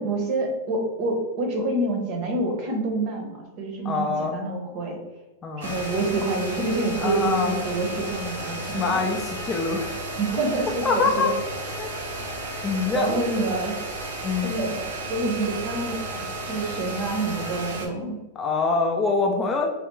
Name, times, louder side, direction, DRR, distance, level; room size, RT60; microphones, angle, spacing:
voice 1, 0.0-5.0 5.6-9.0 10.2-11.3 12.9-13.8 14.4-14.8 15.1-18.2, right 2 dB, 45° right, 1 dB, 0.8 m, -27 dB
voice 2, 3.8-4.3 5.4-5.8 7.0-7.5 8.6-9.9 10.8-11.3 11.8-11.9 12.6-13.3 14.2-14.5 18.4-19.7, left 4 dB, 20° left, 1 dB, 0.4 m, -24 dB
sound 1, 5.6-17.9, right 1 dB, 85° right, 0.6 m, -33 dB
3.4 x 2.3 x 3.0 m, 1.1 s
supercardioid pair, 140°, 0 cm